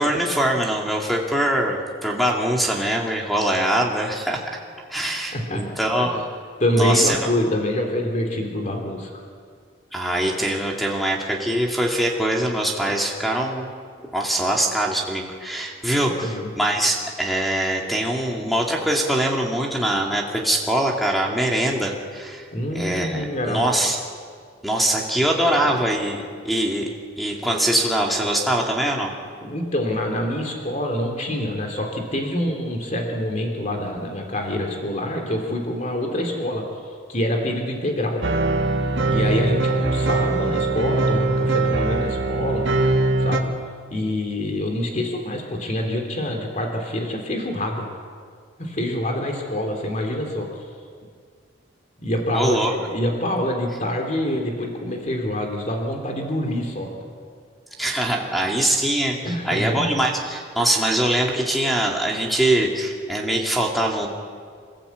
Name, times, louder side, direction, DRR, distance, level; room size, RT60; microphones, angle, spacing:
voice 1, 0.0-4.6 4.9-6.2 6.8-7.3 9.9-13.7 14.1-22.4 22.7-24.0 24.6-26.9 27.2-29.1 52.3-52.7 57.8-64.1, right 1 dB, ahead, -1 dB, 2.5 m, -23 dB
voice 2, 5.3-5.6 6.0-6.1 6.6-9.1 16.0-16.5 22.5-23.9 25.4-25.7 29.4-36.6 37.1-38.2 39.0-42.7 43.2-43.5 43.9-47.8 48.6-50.5 52.0-57.0 59.2-59.9, left 1 dB, 40° left, 2 dB, 3.0 m, -26 dB
sound 1, 38.2-43.4, right 2 dB, 60° right, 1.6 m, -21 dB
27.5 x 15.0 x 8.3 m, 2.1 s
head